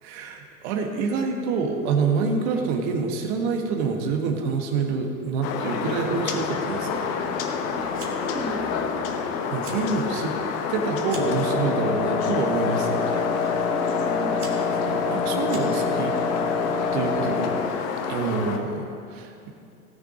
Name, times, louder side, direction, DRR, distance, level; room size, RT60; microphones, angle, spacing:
voice 1, 0.0-7.1 9.5-10.3 10.7-13.2 14.8-16.1 16.9-17.5 18.1-19.5, right 4 dB, 45° right, 3 dB, 1.7 m, -27 dB
sound 1, 5.4-18.6, left 6 dB, 35° left, 1.1 m, -29 dB
voice 2, 7.7-9.2 13.7-14.5 17.2-17.5, right 2 dB, 5° right, 0 dB, 0.6 m, -37 dB
Fire, 7.9-8.4 8.7-9.2 9.5-9.9 10.3-11.4 12.2-12.6 13.4-13.5 14.1-16.0, right 4 dB, 75° right, 2.0 m, -43 dB
Wind instrument woodwind instrument, 11.1-17.8, left 5 dB, 75° left, 1.1 m, -26 dB
17.5 x 6.6 x 5.2 m, 2.6 s
figure-of-eight pair, 90°, 44 cm